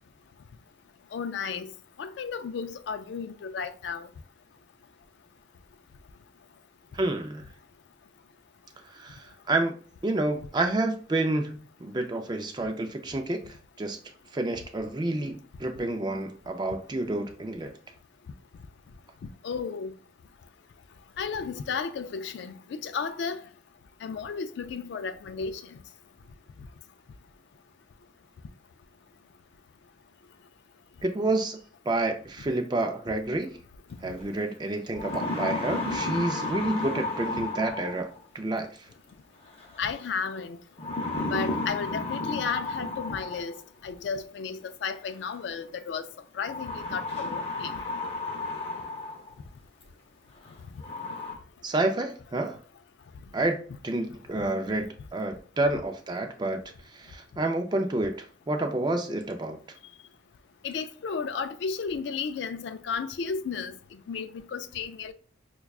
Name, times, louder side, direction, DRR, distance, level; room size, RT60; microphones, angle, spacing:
voice 1, 1.1-1.7 2.0-4.1 19.4-19.9 21.2-23.4 24.0-25.6 39.8-40.6 41.3-43.5 43.8-46.1 46.3-47.7 60.6-65.1, left 5 dB, 60° left, 0.3 m, -33 dB
voice 2, 6.9-7.4 8.9-9.7 10.0-14.0 14.3-17.7 31.0-31.6 31.9-33.5 34.0-38.1 38.3-38.9 51.6-52.6 53.3-53.6 53.8-56.6 56.9-59.6, right 2 dB, 20° right, 0.4 m, -29 dB
sound 1, 34.2-34.3 34.8-38.2 39.6-40.0 40.8-43.6 44.8-44.9 46.4-49.3 49.8-49.9 50.4-50.5 50.8-51.3, left 2 dB, 30° left, 0.7 m, -32 dB
5.7 x 2.3 x 2.3 m
head